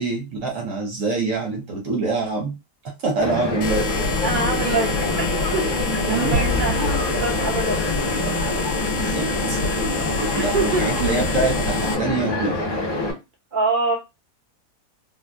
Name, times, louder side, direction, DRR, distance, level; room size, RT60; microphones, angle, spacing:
voice 1, 0.0-2.5 3.0-4.1 6.1-6.4 8.9-9.6 10.1-12.6, right 3 dB, 60° right, 1 dB, 1.0 m, -25 dB
sound 1, 3.2-13.1, left 1 dB, 30° left, 0.9 m, -25 dB
sound 2, 3.6-11.9, left 4 dB, 70° left, 1.1 m, -27 dB
voice 2, 4.2-4.9 5.2-7.8 10.1-10.9 13.5-13.9, right 3 dB, 35° right, -1 dB, 1.0 m, -25 dB
sound 3, 6.3-8.9, left 2 dB, 75° right, 1.3 m, -30 dB
3.8 x 2.3 x 2.3 m, 0.25 s
omnidirectional pair, 1.7 m